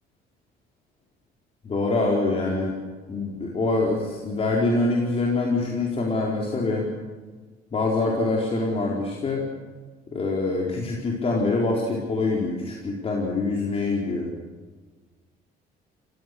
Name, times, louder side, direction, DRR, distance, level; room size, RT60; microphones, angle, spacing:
voice 1, 1.6-2.7 3.1-6.9 7.7-9.4 10.1-14.3, left 2 dB, 35° left, -3 dB, 4.5 m, -25 dB
28.0 x 16.5 x 6.9 m, 1.3 s
cardioid pair, 110°, 17 cm